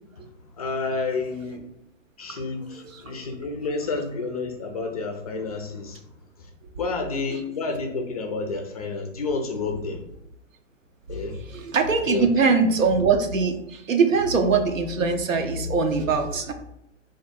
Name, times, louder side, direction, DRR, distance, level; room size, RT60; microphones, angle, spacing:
voice 1, 0.4-1.7 2.2-10.1 11.1-11.5 12.0-12.3, left 3 dB, 30° left, 3 dB, 0.4 m, -30 dB
voice 2, 11.4-16.5, right 4 dB, 80° right, 6 dB, 0.7 m, -22 dB
3.4 x 2.5 x 4.2 m, 0.82 s
hypercardioid pair, 130°, 39 cm